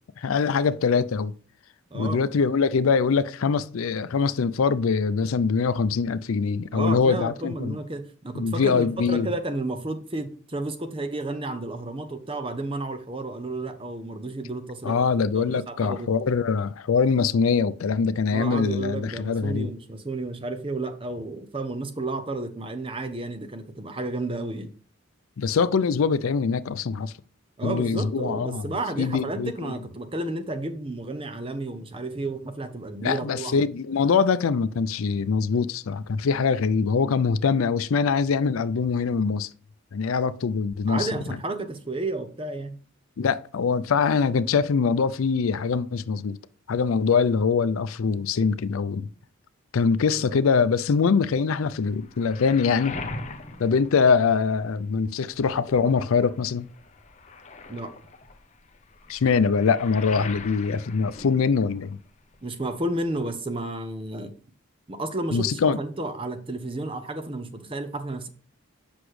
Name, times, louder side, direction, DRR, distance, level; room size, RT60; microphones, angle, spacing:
voice 1, 0.2-1.3 1.9-7.8 8.3-9.3 14.8-19.7 25.4-27.1 27.6-28.7 29.0-29.7 33.0-39.5 39.9-41.1 43.2-46.4 46.7-49.1 49.7-53.0 53.6-56.7 59.1-62.0 65.3-65.8, left 5 dB, 80° left, 0.4 m, -23 dB
voice 2, 1.9-2.2 6.7-15.1 15.3-16.1 18.3-24.7 27.6-33.7 40.9-42.8 50.1-50.4 57.7-57.9 62.4-64.3 64.9-68.3, right 2 dB, 25° right, 0.7 m, -32 dB
Waves surf, 51.6-54.8 55.2-62.1 62.3-63.3, left 3 dB, 35° left, 0.7 m, -41 dB
8.1 x 6.0 x 3.2 m
head